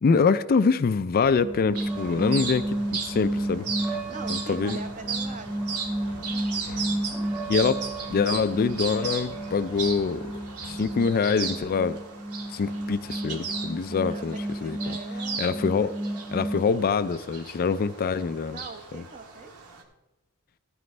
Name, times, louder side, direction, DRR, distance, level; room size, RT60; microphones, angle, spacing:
voice 1, 0.0-3.7 4.3-4.8 7.5-10.2 10.7-12.0 12.5-14.4 14.6-15.0 15.4-15.9 16.3-18.6 18.9-19.0, left 5 dB, 40° left, 13 dB, 0.3 m, -25 dB
sound 1, 1.2-11.0, left 2 dB, 85° left, 1.0 m, -47 dB
sound 2, 1.4-16.6, right 1 dB, 5° right, 0.7 m, -32 dB
sound 3, 1.8-19.8, right 5 dB, 85° right, 1.5 m, -37 dB
voice 2, 4.1-7.2 14.1-16.2 18.5-19.5, right 3 dB, 35° right, 8 dB, 0.9 m, -44 dB
14.0 x 9.3 x 3.3 m, 1.0 s
head